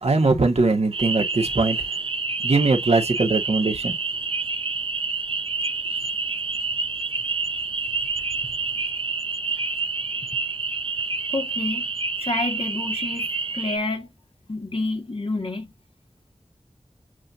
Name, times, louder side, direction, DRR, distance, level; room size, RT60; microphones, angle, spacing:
voice 1, 0.0-1.8 2.4-4.0, right 3 dB, 85° right, 1.3 m, -21 dB
sound 1, 0.9-13.8, right 4 dB, 60° right, 0.6 m, -28 dB
voice 2, 5.7-6.2 11.3-11.9 12.2-14.1 14.5-15.7, left 2 dB, 60° left, 1.5 m, -29 dB
7.6 x 2.6 x 2.6 m
wide cardioid pair, 55°, 11 cm